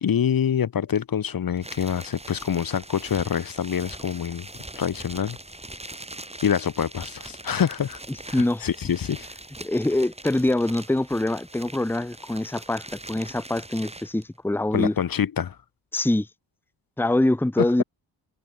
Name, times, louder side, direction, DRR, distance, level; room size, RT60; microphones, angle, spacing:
voice 1, 0.0-4.5 4.8-5.4 6.4-8.0 8.3-9.3 14.7-15.6 17.6-17.8, left 8 dB, 45° left, 1.2 m, -26 dB
sound 1, 1.6-14.2, right 2 dB, 15° right, 5.7 m, -42 dB
voice 2, 8.1-8.7 9.6-14.9 15.9-16.3 17.0-17.8, left 1 dB, 5° left, 1.1 m, -24 dB
cardioid pair, 65°, 47 cm